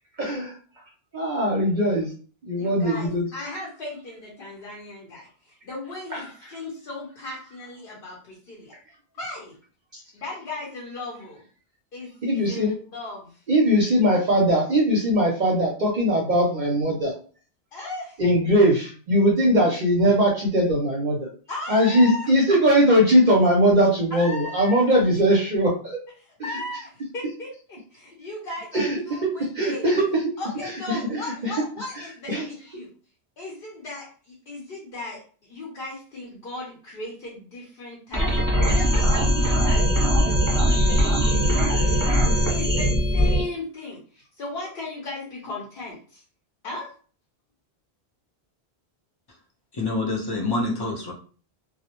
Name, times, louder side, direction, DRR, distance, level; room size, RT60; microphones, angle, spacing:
voice 1, 0.2-0.5 1.1-2.1 2.4-3.2 6.1-6.2 9.9-10.0 12.2-12.7 13.5-17.1 18.2-21.3 21.7-26.0 28.7-29.0 29.5-30.0 30.9-31.5 32.3-32.4, equal, 55° right, -1 dB, 0.6 m, -20 dB
voice 2, 2.5-8.7 9.2-9.6 10.1-11.4 11.9-13.4 17.7-18.2 21.5-22.3 24.1-25.0 26.2-29.8 30.4-32.9 33.4-46.2 46.6-46.9, left 2 dB, 60° left, -3 dB, 0.9 m, -37 dB
sound 1, 38.1-43.4, equal, 20° right, 0.8 m, -20 dB
voice 3, 49.7-51.1, left 2 dB, 35° left, -1 dB, 0.4 m, -26 dB
2.4 x 2.0 x 2.8 m, 0.41 s
omnidirectional pair, 1.1 m